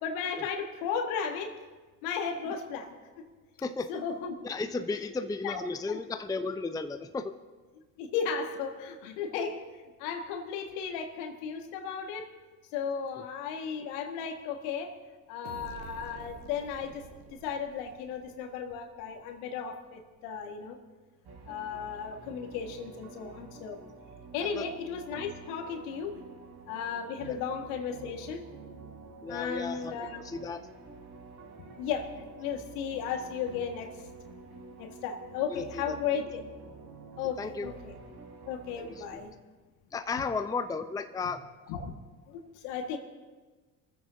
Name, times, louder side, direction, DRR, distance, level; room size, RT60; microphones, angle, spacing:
voice 1, 0.0-1.6 2.0-3.3 3.9-4.3 4.9-5.1 5.4-6.0 8.0-9.6 10.0-12.3 12.7-15.0 15.3-17.0 17.3-20.8 21.5-23.8 24.3-26.2 26.7-28.5 29.3-30.2 31.8-34.0 34.8-36.4 37.2-37.9 38.5-39.3 41.7-41.9 42.3-43.0, left 6 dB, 65° left, 5 dB, 1.9 m, -35 dB
voice 2, 4.4-7.3 24.6-24.7 29.2-30.6 35.5-36.0 37.4-37.7 38.8-39.2 39.9-41.4, left 4 dB, 5° left, 8 dB, 0.6 m, -34 dB
sound 1, 15.4-19.1, right 6 dB, 70° right, 1.4 m, -49 dB
sound 2, 21.2-39.2, right 4 dB, 50° right, 3.7 m, -49 dB
27.5 x 14.5 x 2.7 m, 1.3 s
figure-of-eight pair, 60°, 50 cm